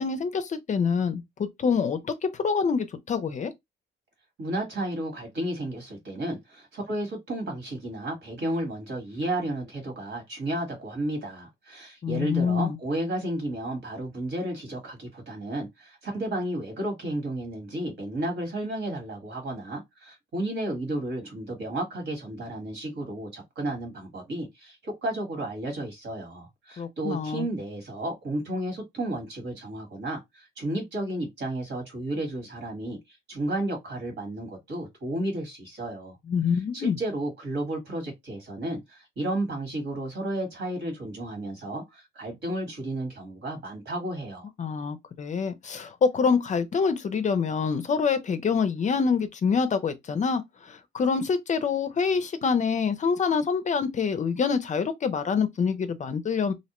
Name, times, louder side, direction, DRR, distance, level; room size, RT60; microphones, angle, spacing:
voice 1, 0.0-3.5 12.0-12.8 26.8-27.5 36.3-37.0 44.6-56.5, left 5 dB, 40° left, 0.4 m, -26 dB
voice 2, 4.4-33.0 33.3-36.2 36.7-44.5, right 1 dB, 60° right, 1.6 m, -32 dB
2.6 x 2.1 x 2.9 m
cardioid pair, 90°, 20 cm